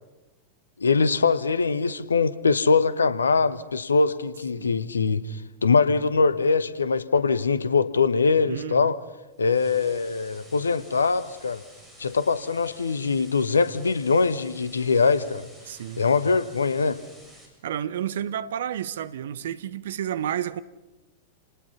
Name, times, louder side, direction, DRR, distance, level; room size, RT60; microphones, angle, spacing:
voice 1, 0.8-5.2 5.6-8.9 9.4-11.6 12.0-15.5 16.0-17.0, left 4 dB, 75° left, 1.1 m, -22 dB
voice 2, 4.6-4.9 8.5-8.9 15.7-16.0 17.6-20.6, right 10 dB, 60° right, 0.9 m, -31 dB
sound 1, 9.4-17.4, equal, ahead, 7.1 m, -51 dB
28.5 x 20.0 x 5.7 m
figure-of-eight pair, 90°, 0 cm